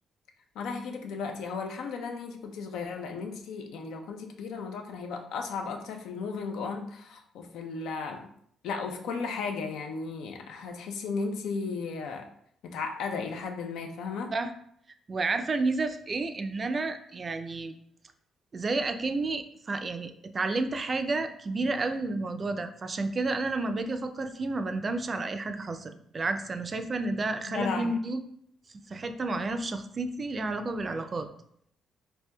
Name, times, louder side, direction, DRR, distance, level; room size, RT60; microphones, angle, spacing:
voice 1, 0.5-8.3 8.6-12.3 12.6-14.3 27.5-27.9, left 4 dB, 85° left, 4 dB, 0.5 m, -35 dB
voice 2, 15.1-17.7 18.5-28.2 28.9-31.3, right 3 dB, 35° right, 8 dB, 0.3 m, -31 dB
4.3 x 2.7 x 2.2 m, 0.68 s
cardioid pair, 90°, 0 cm